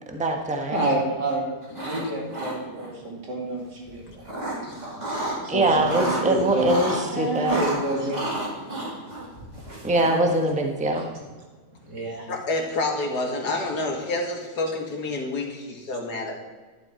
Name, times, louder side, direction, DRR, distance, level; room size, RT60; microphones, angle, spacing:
voice 1, 0.1-0.8 5.5-7.6 9.8-11.1, right 2 dB, 5° right, 2 dB, 1.1 m, -23 dB
voice 2, 0.7-1.5 1.8-4.9 5.4-6.7 7.1-8.2 11.9-12.3, right 2 dB, 80° right, -2 dB, 3.2 m, -28 dB
sound 1, 1.6-2.0 2.3-2.9 3.9-5.4 5.7-7.0 7.4-10.4, right 1 dB, 25° right, 2.7 m, -31 dB
voice 3, 12.3-16.4, left 2 dB, 70° left, 1 dB, 2.4 m, -28 dB
12.5 x 11.0 x 4.4 m, 1.4 s
omnidirectional pair, 1.8 m